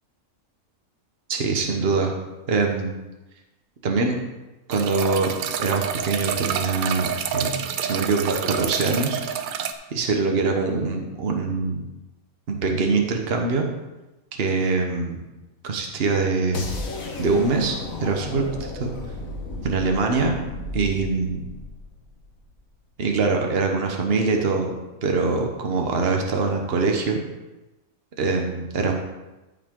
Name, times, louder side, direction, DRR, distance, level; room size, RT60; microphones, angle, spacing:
voice 1, 1.3-2.1 2.5-2.9 3.8-4.2 4.7-9.2 9.9-11.8 12.5-13.7 14.3-15.2 15.6-16.7 17.2-18.9 19.6-20.4 20.7-21.4 23.0-24.7 25.0-27.2 28.2-29.0, right 4 dB, 50° right, 2 dB, 1.3 m, -23 dB
sound 1, 4.7-9.7, right 8 dB, 85° right, 1.1 m, -28 dB
sound 2, 16.5-22.5, left 2 dB, 85° left, 1.7 m, -34 dB
13.5 x 5.7 x 3.8 m, 1.0 s
omnidirectional pair, 1.4 m